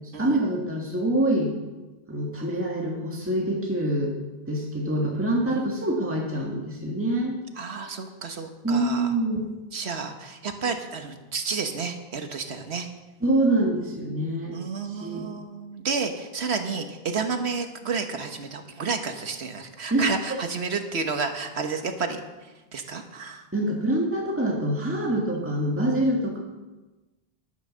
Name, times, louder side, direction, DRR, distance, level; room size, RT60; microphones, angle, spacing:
voice 1, 0.2-1.5 2.1-4.1 4.5-7.4 8.6-9.4 13.2-14.6 14.8-15.3 19.9-20.1 23.5-26.4, right 1 dB, 10° right, -2 dB, 1.8 m, -25 dB
voice 2, 7.6-9.1 9.7-12.9 14.5-22.2 22.7-23.4 25.3-25.4, right 5 dB, 85° right, 6 dB, 1.5 m, -31 dB
11.0 x 10.5 x 6.3 m, 1.1 s
omnidirectional pair, 1.1 m